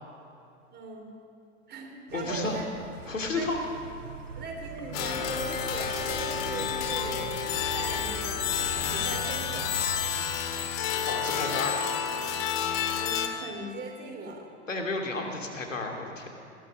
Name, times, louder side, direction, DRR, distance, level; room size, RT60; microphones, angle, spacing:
voice 1, 0.7-1.1 1.7-2.6 3.3-3.5 4.4-7.3 7.7-9.7 12.9-14.5, right 3 dB, 25° right, 1 dB, 3.8 m, -39 dB
voice 2, 2.1-2.6 3.1-3.6 5.1-5.2 11.1-11.8 14.7-16.3, left 3 dB, 90° left, 2 dB, 2.9 m, -32 dB
sound 1, 2.1-10.3, right 4 dB, 80° right, 1.5 m, -42 dB
sound 2, 4.9-13.3, left 8 dB, 50° left, 2.1 m, -30 dB
19.0 x 13.0 x 5.2 m, 2.8 s
hypercardioid pair, 100°, 37 cm